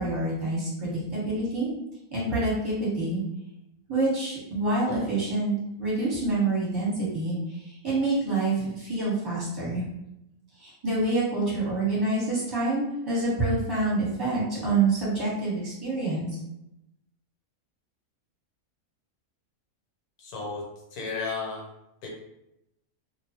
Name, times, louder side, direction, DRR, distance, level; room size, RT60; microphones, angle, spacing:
voice 1, 0.0-1.7 2.1-3.2 3.9-7.4 7.7-9.8 10.6-16.3, right 2 dB, 20° right, -9 dB, 1.0 m, -27 dB
voice 2, 20.2-20.6 20.9-21.7 22.0-22.1, left 4 dB, 85° left, -2 dB, 1.3 m, -33 dB
2.5 x 2.2 x 2.8 m, 0.87 s
omnidirectional pair, 1.5 m